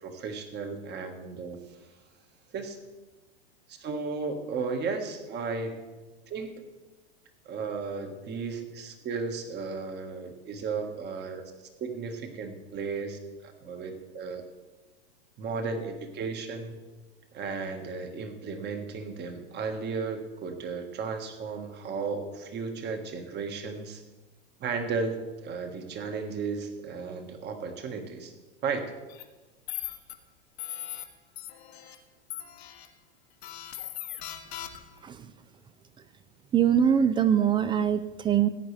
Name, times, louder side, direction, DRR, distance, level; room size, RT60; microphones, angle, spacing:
voice 1, 0.0-1.6 2.5-2.8 3.7-5.8 6.3-6.6 7.4-11.5 11.8-14.4 15.4-16.8 17.3-24.0 24.6-28.3 28.6-28.9, right 4 dB, 35° right, 5 dB, 1.5 m, -34 dB
sound 1, 29.1-29.2 29.7-30.1 30.6-31.0 31.4-32.0 32.3-32.9 33.4-35.0, left 12 dB, 75° left, 1.3 m, -39 dB
voice 2, 36.5-38.5, right 8 dB, 15° right, 13 dB, 0.4 m, -23 dB
16.5 x 8.9 x 3.3 m, 1.2 s
hypercardioid pair, 115°, 31 cm